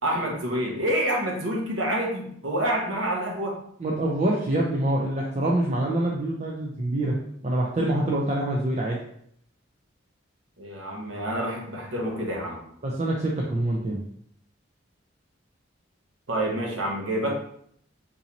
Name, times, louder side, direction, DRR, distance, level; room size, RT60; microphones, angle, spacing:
voice 1, 0.0-3.6 10.6-12.6 16.3-17.3, right 1 dB, 80° right, -1 dB, 1.0 m, -27 dB
voice 2, 3.8-7.2 7.4-9.0 12.8-14.0, right 1 dB, 35° right, -3 dB, 0.4 m, -25 dB
3.9 x 2.7 x 2.9 m, 0.67 s
head